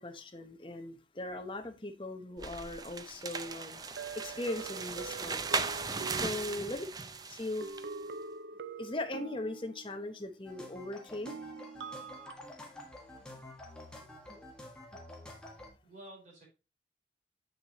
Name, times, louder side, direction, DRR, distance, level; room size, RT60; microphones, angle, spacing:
voice 1, 0.0-5.5 6.1-6.9 7.3-7.7 8.8-11.4, left 2 dB, 30° left, 1.0 m, -39 dB
sound 1, 2.4-7.9, right 4 dB, 20° right, 0.5 m, -38 dB
sound 2, 4.0-7.1 7.6-10.2 11.3-12.3, right 5 dB, 75° right, 0.4 m, -44 dB
voice 2, 6.6-6.9 14.3-14.4 14.9-15.0 15.8-16.5, right 1 dB, 45° right, 4.4 m, -53 dB
sound 3, 10.4-15.7, left 1 dB, 5° left, 1.6 m, -49 dB
7.5 x 6.9 x 3.0 m
head